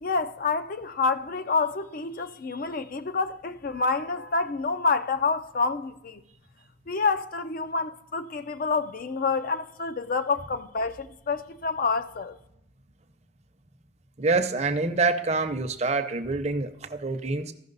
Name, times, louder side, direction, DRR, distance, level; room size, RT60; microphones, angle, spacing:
voice 1, 0.0-6.2 6.9-12.4, left 4 dB, 50° left, 0.5 m, -28 dB
voice 2, 14.2-17.5, right 3 dB, 35° right, 0.7 m, -26 dB
15.0 x 6.1 x 4.0 m
head